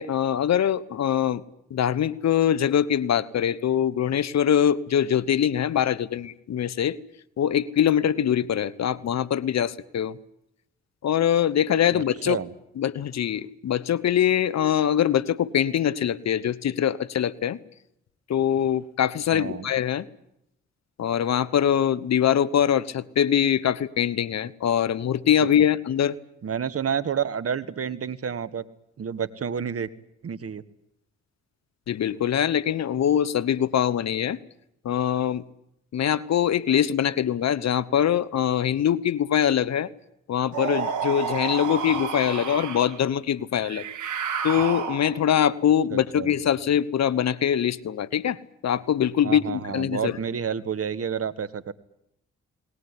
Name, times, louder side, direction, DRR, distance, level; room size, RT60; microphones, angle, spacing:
voice 1, 0.0-1.4 1.7-7.0 7.4-10.2 11.0-12.4 12.8-17.6 18.3-20.1 21.0-26.2 31.9-34.4 34.8-35.4 35.9-39.9 40.3-43.8 44.4-50.2, left 9 dB, 65° left, 19 dB, 1.2 m, -23 dB
voice 2, 11.9-12.5 19.3-19.7 26.4-28.6 29.0-29.9 30.2-30.6 46.1-46.3 49.2-51.7, right 7 dB, 50° right, 15 dB, 1.6 m, -29 dB
sound 1, 40.5-43.0 43.6-45.3, right 7 dB, 80° right, 3.2 m, -30 dB
20.0 x 19.5 x 9.9 m, 0.80 s
supercardioid pair, 50°, 29 cm